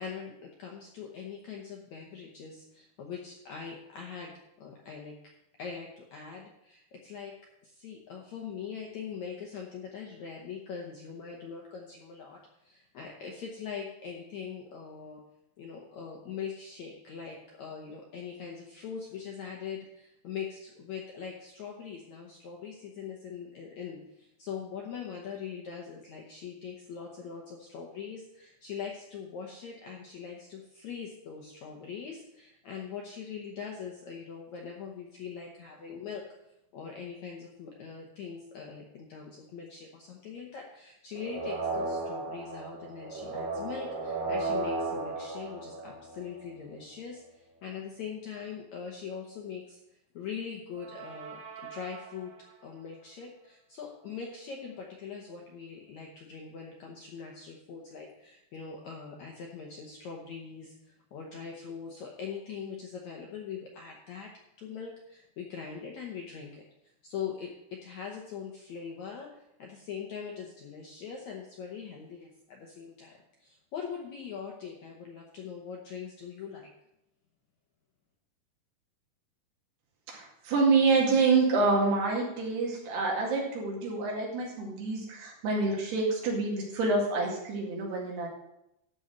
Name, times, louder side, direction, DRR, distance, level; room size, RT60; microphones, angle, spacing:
voice 1, 0.0-4.3 4.6-5.1 5.6-7.4 7.6-15.2 15.6-36.3 36.7-49.8 50.1-52.3 52.6-64.3 64.6-66.7 67.0-76.7, left 6 dB, 70° left, 0 dB, 1.7 m, -42 dB
sound 1, 41.1-46.5 50.8-52.5, right 3 dB, 50° right, 3.9 m, -35 dB
voice 2, 80.1-88.3, right 3 dB, 80° right, -2 dB, 4.3 m, -27 dB
12.5 x 4.3 x 7.6 m, 0.82 s
omnidirectional pair, 4.7 m